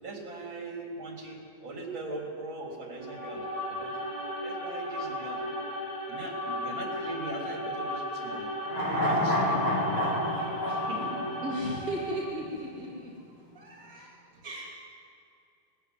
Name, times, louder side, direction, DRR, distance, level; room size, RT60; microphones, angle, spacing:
voice 1, 0.0-3.4 3.7-3.9 4.4-5.4 6.1-8.5 8.9-10.3 10.7-11.3 11.6-11.7, right 2 dB, 75° right, 0 dB, 4.3 m, -40 dB
sound 1, 2.9-12.4, left 1 dB, 80° left, 5.0 m, -35 dB
sound 2, 8.6-12.0 12.3-12.4, equal, 55° left, 7.6 m, -29 dB
voice 2, 11.4-13.1 13.5-14.2 14.4-14.7, right 1 dB, 40° right, -7 dB, 3.6 m, -36 dB
20.5 x 14.5 x 9.5 m, 2.6 s
omnidirectional pair, 2.1 m